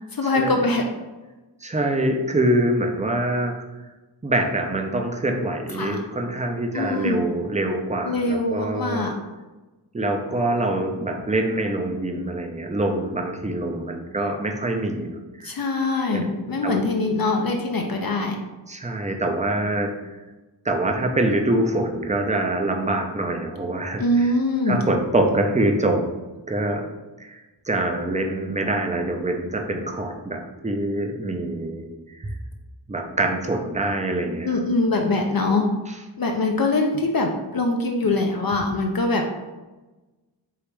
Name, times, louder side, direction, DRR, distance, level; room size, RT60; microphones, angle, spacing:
voice 1, 0.1-0.8 5.7-6.0 6.7-7.2 8.0-9.1 15.4-18.4 24.0-24.8 34.4-35.7 36.2-39.2, left 2 dB, 55° left, 2 dB, 0.5 m, -23 dB
voice 2, 1.6-3.6 4.2-9.1 9.9-15.5 16.1-16.3 16.6-16.8 18.7-20.0 20.6-24.3 24.7-26.0 26.5-26.9 27.2-31.9 32.1-32.3 32.9-34.6, right 1 dB, 15° right, 3 dB, 0.5 m, -25 dB
4.7 x 2.9 x 3.3 m, 1.1 s
wide cardioid pair, 75°, 45 cm